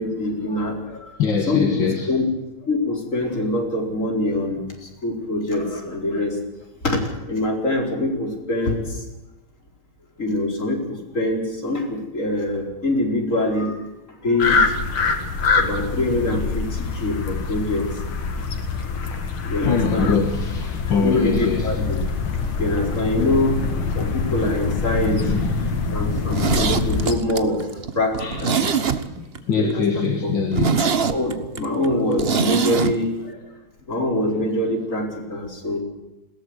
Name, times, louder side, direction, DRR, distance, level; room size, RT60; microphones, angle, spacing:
voice 1, 0.0-1.1 1.5-2.3 2.7-4.6 5.0-6.3 6.8-7.0 7.3-9.0 10.2-13.7 14.2-14.7 15.5-17.9 19.0-19.1 19.5-20.1 20.9-22.0 22.4-23.6 23.9-25.3 25.9-27.6 27.9-28.6 29.6-29.8 30.2-30.3 31.0-33.4 33.9-35.8, left 1 dB, 35° left, 4.9 m, -24 dB
voice 2, 1.2-2.1 19.6-21.8 24.4-24.5 25.2-25.9 26.3-26.5 28.2-28.8 29.2-30.9 34.3-34.4, left 5 dB, 65° left, 2.4 m, -24 dB
sound 1, 14.4-27.2, left 4 dB, 90° left, 2.8 m, -25 dB
Zipper (clothing), 26.1-29.4 29.7-29.8 30.1-30.2 30.5-32.9 33.2-33.3, right 6 dB, 40° right, 0.9 m, -23 dB
21.0 x 17.5 x 8.1 m
omnidirectional pair, 2.3 m